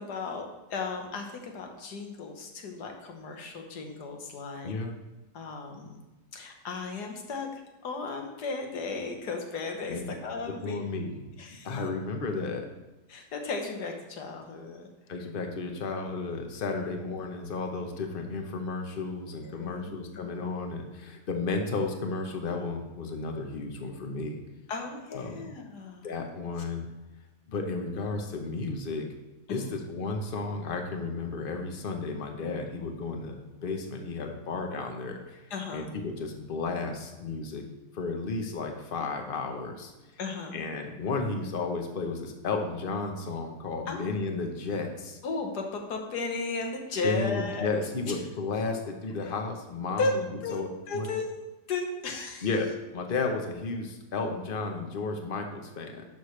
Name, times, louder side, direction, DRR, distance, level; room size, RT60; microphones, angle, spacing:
voice 1, 0.0-4.7 5.3-6.0 6.3-10.8 11.4-11.8 13.1-14.9 16.8-16.9 19.4-20.2 24.7-26.1 29.5-29.8 35.5-35.9 40.2-40.6 43.9-44.0 45.2-47.7 48.1-48.2 50.0-51.3 51.7-52.5, left 3 dB, 75° left, 3 dB, 1.7 m, -35 dB
voice 2, 4.6-5.0 9.9-10.0 10.5-11.3 11.6-12.7 15.1-24.4 25.1-25.5 26.0-26.9 27.5-29.1 29.5-35.4 35.7-37.7 37.9-39.9 40.5-45.2 47.0-50.2 50.5-50.7 50.9-51.1 52.4-56.1, left 3 dB, 40° left, 4 dB, 1.0 m, -33 dB
11.0 x 6.6 x 3.2 m, 1.1 s
omnidirectional pair, 1.8 m